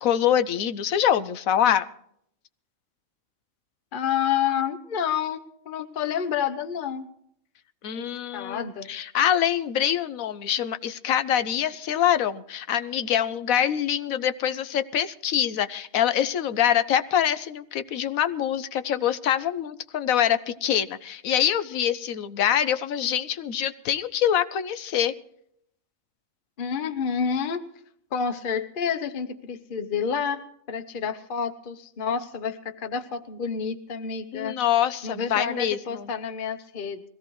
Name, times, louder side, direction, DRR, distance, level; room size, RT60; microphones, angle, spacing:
voice 1, 0.0-1.9 7.8-25.1 34.3-36.1, left 10 dB, 80° left, 12 dB, 1.2 m, -25 dB
voice 2, 3.9-5.4 5.6-7.1 7.9-8.1 8.3-8.9 26.6-27.6 28.1-34.6 35.0-37.0, left 7 dB, 45° left, 9 dB, 1.0 m, -29 dB
21.5 x 16.5 x 3.2 m, 0.70 s
omnidirectional pair, 1.4 m